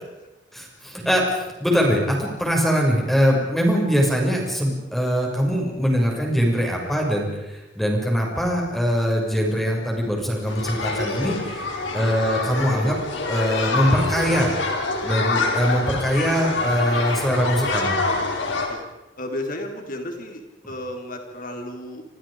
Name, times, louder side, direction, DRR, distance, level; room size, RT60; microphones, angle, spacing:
voice 1, 0.5-11.6 11.9-13.0 13.2-14.6 15.0-17.9, equal, ahead, -1 dB, 6.7 m, -22 dB
sound 1, 10.5-18.7, left 3 dB, 80° left, 5.0 m, -26 dB
voice 2, 19.2-22.0, left 1 dB, 50° left, 3 dB, 4.4 m, -33 dB
29.5 x 26.5 x 5.2 m, 1.0 s
head